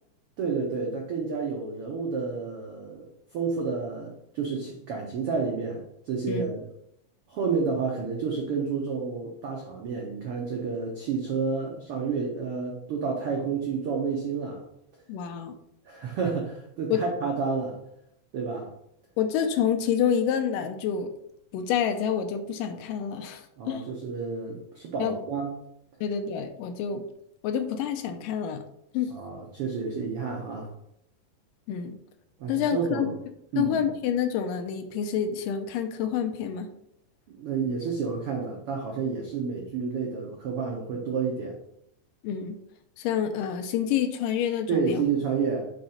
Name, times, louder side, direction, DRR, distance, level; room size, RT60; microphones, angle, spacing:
voice 1, 0.4-3.1 3.3-6.7 7.3-14.6 15.8-17.8 18.3-18.7 23.6-25.6 29.1-30.7 32.4-33.2 33.5-33.8 37.3-41.6 44.7-45.7, right 5 dB, 80° right, -1 dB, 1.2 m, -30 dB
voice 2, 15.1-15.5 16.9-17.0 19.2-21.1 21.5-23.9 25.0-25.2 26.0-27.0 27.4-28.6 28.9-29.1 31.7-32.0 32.5-33.1 33.6-36.7 42.2-42.6 43.0-45.0, left 8 dB, 85° left, 7 dB, 2.3 m, -28 dB
6.0 x 3.8 x 5.7 m, 0.74 s
omnidirectional pair, 3.9 m